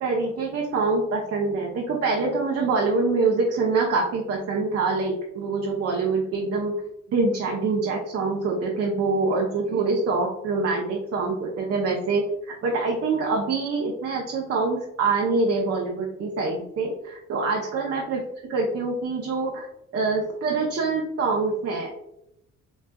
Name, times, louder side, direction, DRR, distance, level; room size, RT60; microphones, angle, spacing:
voice 1, 0.0-6.7 7.1-12.2 12.6-18.2 18.5-19.7 19.9-21.9, right 3 dB, 55° right, -1 dB, 0.6 m, -25 dB
4.0 x 2.3 x 2.2 m, 0.81 s
cardioid pair, 90°, 30 cm